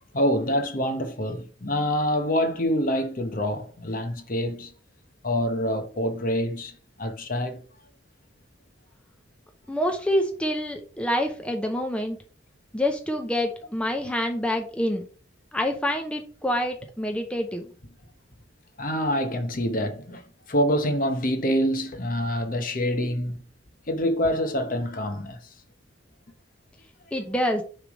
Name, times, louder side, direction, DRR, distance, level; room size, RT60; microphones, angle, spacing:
voice 1, 0.1-4.7 5.2-7.6 18.8-20.2 20.5-23.4 23.9-25.4, equal, 45° left, 0.9 m, -26 dB
voice 2, 9.7-12.2 12.7-15.0 15.5-17.7 27.1-27.6, equal, 5° left, 0.6 m, -27 dB
6.5 x 3.3 x 5.1 m
head